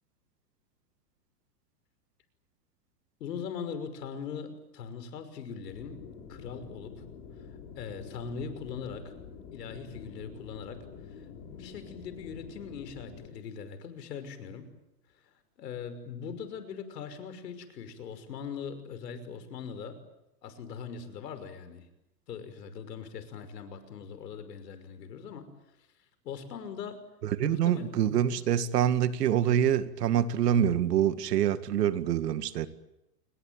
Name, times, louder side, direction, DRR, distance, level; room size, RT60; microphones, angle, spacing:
voice 1, 3.2-6.0 6.3-7.0 7.8-9.1 9.5-10.8 11.2-14.7 15.6-20.0 20.4-21.8 22.3-25.5 26.2-27.0 27.4-27.9, left 6 dB, 80° left, 5.9 m, -41 dB
sound 1, 5.7-13.3, left 6 dB, 45° left, 6.4 m, -47 dB
voice 2, 27.4-32.7, right 10 dB, 75° right, 2.1 m, -26 dB
28.5 x 22.0 x 9.2 m
supercardioid pair, 160°, 48 cm